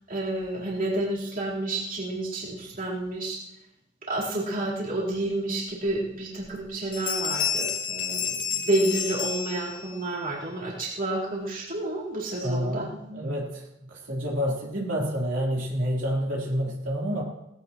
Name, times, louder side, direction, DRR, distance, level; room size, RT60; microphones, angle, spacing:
voice 1, 0.1-3.4 4.1-12.9, right 1 dB, 50° right, -6 dB, 4.2 m, -30 dB
Bell, 5.9-6.0 6.4-6.7 6.9-10.1, left 8 dB, 50° left, 2.6 m, -30 dB
voice 2, 12.4-17.2, equal, 70° right, -5 dB, 4.0 m, -29 dB
19.0 x 17.0 x 3.2 m, 0.83 s
head